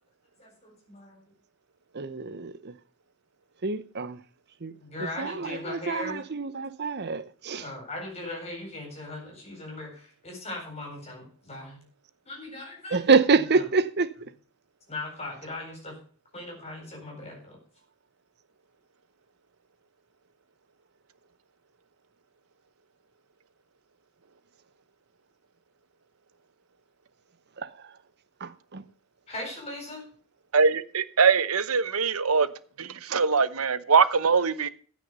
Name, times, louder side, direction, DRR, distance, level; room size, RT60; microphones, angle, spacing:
voice 1, 0.4-1.2 4.8-6.2 7.6-11.8 12.3-13.0 13.3-13.6 14.9-16.0 16.3-17.6 29.3-30.1, left 2 dB, 30° left, 4.4 m, -39 dB
voice 2, 1.9-2.7 3.6-4.2 4.6-4.7 5.2-7.6 12.9-14.1 28.4-28.8, right 4 dB, 50° right, 0.9 m, -26 dB
voice 3, 30.5-32.5 32.8-34.7, right 5 dB, 85° right, 0.9 m, -22 dB
15.0 x 6.3 x 5.4 m
head